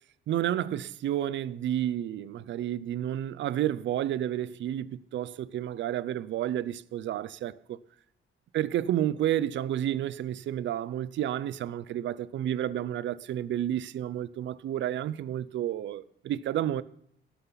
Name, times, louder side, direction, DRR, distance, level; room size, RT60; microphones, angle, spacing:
voice 1, 0.3-7.8 8.5-16.8, right 11 dB, 65° right, 0.6 m, -31 dB
18.0 x 11.5 x 4.0 m
cardioid pair, 170°, 21 cm